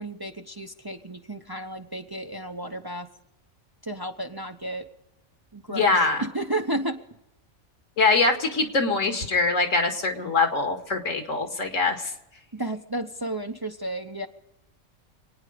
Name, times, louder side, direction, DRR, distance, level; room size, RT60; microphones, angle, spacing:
voice 1, 0.0-3.1 3.8-4.9 5.5-7.0 12.5-14.3, right 1 dB, 25° right, 5 dB, 0.6 m, -32 dB
voice 2, 5.7-6.3 8.0-12.1, left 3 dB, 85° left, 4 dB, 2.2 m, -23 dB
26.5 x 9.7 x 5.1 m, 0.91 s
omnidirectional pair, 1.3 m